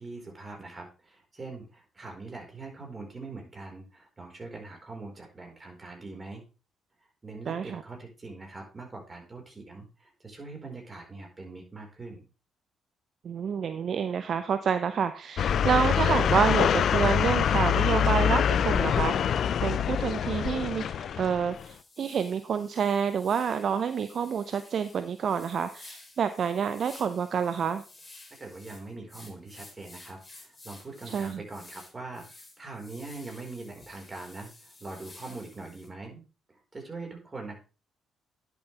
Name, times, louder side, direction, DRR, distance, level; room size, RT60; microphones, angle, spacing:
voice 1, 0.0-6.4 7.2-12.3 28.4-32.3 32.6-36.2 36.5-37.6, right 3 dB, 30° right, 1 dB, 4.2 m, -42 dB
voice 2, 7.5-7.8 13.2-19.3 19.6-27.8 31.1-31.4, right 7 dB, 55° right, 11 dB, 0.6 m, -28 dB
sound 1, 15.4-21.7, left 8 dB, 60° left, 0.4 m, -25 dB
sound 2, 21.0-21.1 21.5-35.9, left 2 dB, 25° left, 3.0 m, -52 dB
10.5 x 7.1 x 3.3 m, 0.32 s
hypercardioid pair, 45°, 0 cm